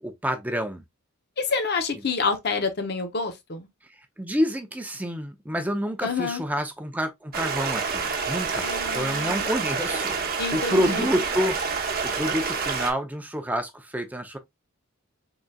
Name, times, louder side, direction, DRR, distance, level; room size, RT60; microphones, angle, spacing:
voice 1, 0.0-0.8 4.2-11.6 12.0-14.4, equal, 10° right, 0.6 m, -28 dB
voice 2, 1.4-3.7 6.0-6.4 8.6-9.5 10.4-11.2, left 4 dB, 50° left, 0.8 m, -28 dB
Stream, 7.3-12.9, right 5 dB, 45° right, 0.9 m, -28 dB
3.9 x 3.8 x 2.3 m
head